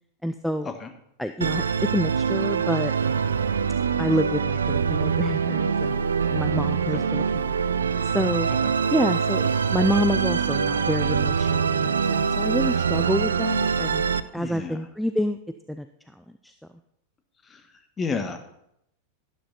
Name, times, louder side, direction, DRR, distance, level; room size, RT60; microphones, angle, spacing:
voice 1, 0.2-0.7 1.2-1.6 1.9-3.4 4.0-6.0 6.3-7.5 8.1-8.5 8.9-14.0 14.3-15.4 15.7-15.9 16.2-16.5, equal, ahead, 9 dB, 0.5 m, -28 dB
Musical instrument, 1.4-14.2, right 6 dB, 70° right, 0.4 m, -24 dB
voice 2, 14.3-14.8 17.5-17.6 18.0-18.4, left 4 dB, 20° left, 8 dB, 1.4 m, -31 dB
12.0 x 11.5 x 4.1 m, 0.76 s
figure-of-eight pair, 90°, 0 cm